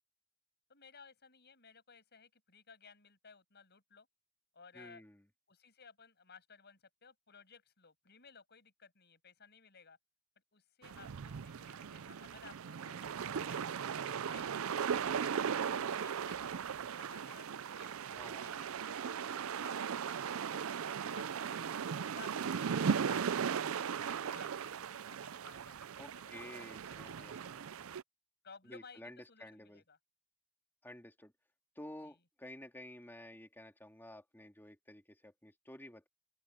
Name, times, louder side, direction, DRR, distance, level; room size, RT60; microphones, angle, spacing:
voice 1, 0.7-4.1 4.5-5.0 5.5-10.0 10.4-14.6 15.0-18.0 18.3-18.5 18.9-21.6 22.1-27.4 28.4-30.0 32.0-32.2, left 5 dB, 50° left, 7.8 m, -58 dB
voice 2, 4.7-5.2 18.1-18.5 26.0-27.9 28.6-29.8 30.8-31.3 31.8-36.1, left 1 dB, 10° left, 2.6 m, -52 dB
sound 1, 10.8-28.0, right 7 dB, 65° right, 0.5 m, -38 dB
open air
head